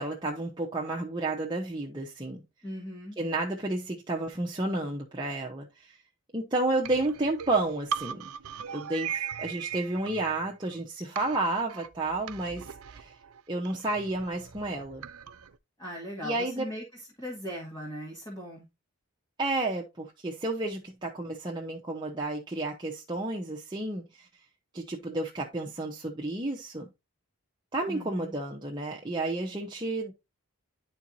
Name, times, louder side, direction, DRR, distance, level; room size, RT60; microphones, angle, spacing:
voice 1, 0.0-2.4 3.2-6.0 6.3-8.2 8.7-13.1 13.5-15.1 16.2-16.7 19.4-24.3 24.7-26.9 27.7-30.1, right 2 dB, 20° right, 0.9 m, -31 dB
voice 2, 2.6-3.2 15.8-16.8 17.2-18.7 27.9-28.3, equal, 20° left, 2.0 m, -38 dB
sound 1, 6.8-10.8 11.2-15.6, right 8 dB, 80° right, 0.5 m, -39 dB
11.0 x 4.6 x 2.7 m
head